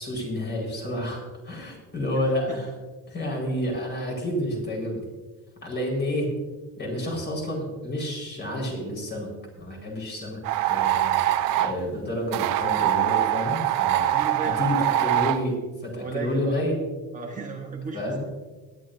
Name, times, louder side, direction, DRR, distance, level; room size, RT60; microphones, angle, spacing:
voice 1, 0.0-2.7 3.1-5.0 5.6-6.3 6.8-9.3 9.6-10.4 10.7-11.2 11.6-14.1 14.6-16.8 17.9-18.3, left 1 dB, 30° left, -1 dB, 4.5 m, -29 dB
sound 1, 10.4-11.8 12.3-15.4, right 12 dB, 65° right, 0.7 m, -23 dB
voice 2, 14.1-14.9 16.0-16.6 17.1-18.3, right 4 dB, 20° right, 1 dB, 1.1 m, -35 dB
20.5 x 10.5 x 2.6 m, 1.3 s
cardioid pair, 150°, 36 cm